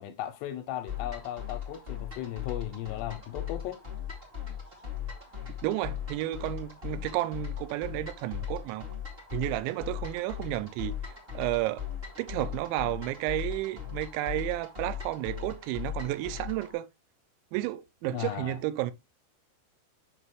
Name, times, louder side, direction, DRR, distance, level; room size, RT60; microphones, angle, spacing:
voice 1, 0.0-3.8 18.1-18.6, left 12 dB, 85° left, 2.5 m, -36 dB
sound 1, 0.9-16.7, left 9 dB, 35° right, 0.9 m, -39 dB
voice 2, 5.6-8.9 9.3-11.0 11.3-11.8 12.2-16.9 17.5-18.9, right 15 dB, 90° right, 2.9 m, -32 dB
7.3 x 6.1 x 3.1 m
omnidirectional pair, 5.2 m